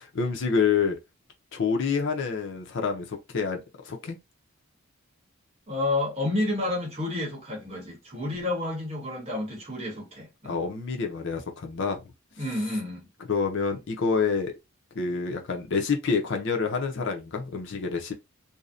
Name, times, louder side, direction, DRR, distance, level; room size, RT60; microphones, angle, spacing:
voice 1, 0.1-1.0 1.5-4.2 10.5-12.0 13.3-14.5 15.0-18.1, left 5 dB, 55° left, 0.5 m, -27 dB
voice 2, 5.7-10.6 12.4-13.1, left 2 dB, 30° right, 0.9 m, -30 dB
2.6 x 2.0 x 2.4 m
head